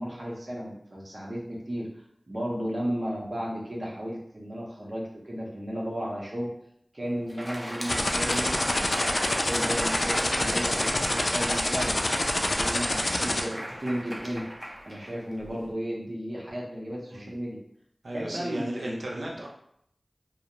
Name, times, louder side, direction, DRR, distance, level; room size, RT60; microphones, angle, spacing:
voice 1, 0.0-1.9 2.3-6.5 6.9-11.9 12.4-14.4 14.8-17.6 18.1-19.2, equal, 55° right, -4 dB, 0.7 m, -34 dB
Crowd, 7.2-15.6, equal, 10° right, 0.5 m, -35 dB
sound 1, 7.9-13.4, left 1 dB, 60° left, 0.3 m, -26 dB
voice 2, 18.0-19.5, right 1 dB, 90° right, -2 dB, 0.5 m, -35 dB
2.4 x 2.0 x 2.9 m, 0.71 s
wide cardioid pair, 55°, 0 cm